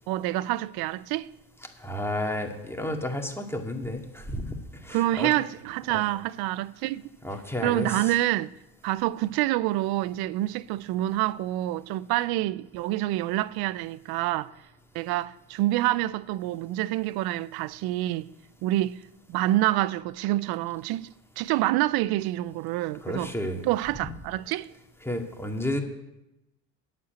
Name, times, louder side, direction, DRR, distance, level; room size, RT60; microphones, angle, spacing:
voice 1, 0.1-1.3 4.9-7.1 7.6-8.5 8.8-14.5 14.9-18.3 18.6-19.0 19.3-23.3 23.6-24.7, right 16 dB, 60° right, 0.6 m, -27 dB
voice 2, 1.8-4.6 4.8-5.3 5.9-6.0 7.2-8.1 23.0-23.7 25.0-25.8, left 1 dB, 5° left, 2.1 m, -31 dB
8.4 x 7.7 x 8.9 m
hypercardioid pair, 80°, 42 cm